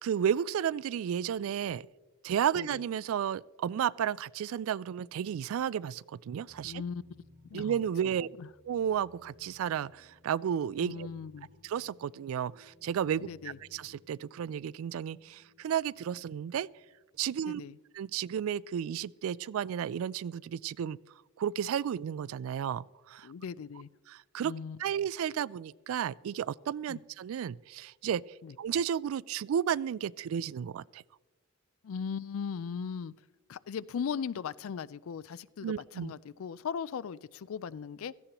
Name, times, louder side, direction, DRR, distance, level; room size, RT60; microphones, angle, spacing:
voice 1, 0.0-1.9 2.2-6.8 7.5-8.3 8.7-11.1 11.6-16.7 17.2-17.6 18.0-21.0 21.4-23.3 24.1-24.5 24.8-28.2 28.6-31.0 35.6-36.1, right 9 dB, 75° right, 22 dB, 0.3 m, -32 dB
sound 1, 6.5-17.2, left 2 dB, 50° right, 1.3 m, -61 dB
voice 2, 6.6-7.0 7.5-7.8 8.4-8.5 10.8-11.5 13.2-13.6 17.5-17.8 23.2-23.9 24.4-24.8 26.9-27.0 28.4-28.5 31.8-33.1 33.5-38.1, left 6 dB, 70° left, 19 dB, 0.4 m, -38 dB
17.0 x 14.0 x 3.0 m, 1.2 s
head